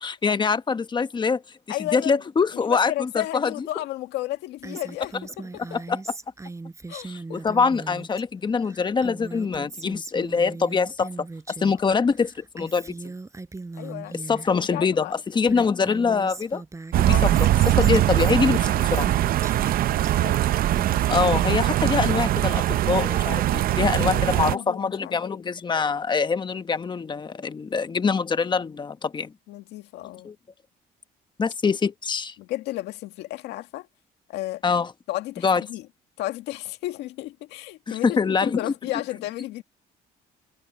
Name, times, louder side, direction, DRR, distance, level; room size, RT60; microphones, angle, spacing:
voice 1, 0.0-1.4 1.8-3.7 5.7-6.0 7.0-11.1 11.5-12.9 14.3-16.6 17.0-17.2 17.7-19.1 21.1-29.3 30.2-30.3 31.4-32.3 34.6-34.9 35.4-35.6 37.9-38.6, left 5 dB, 25° left, 1.1 m, -24 dB
voice 2, 1.7-2.2 2.5-5.6 6.9-7.4 13.8-14.1 14.7-15.1 17.1-17.3 20.0-20.4 24.0-25.4 29.5-30.3 32.4-33.9 34.3-34.6 35.1-35.8 36.2-39.6, left 16 dB, 90° left, 2.0 m, -33 dB
Female speech woman speaking, 4.6-8.2 8.5-11.8 12.1-14.5 15.1-15.2 15.4-20.1 20.5-22.5, right 3 dB, 15° right, 6.4 m, -39 dB
sound 1, 16.9-24.6, right 13 dB, 60° right, 0.6 m, -21 dB
cardioid pair, 110°, 17 cm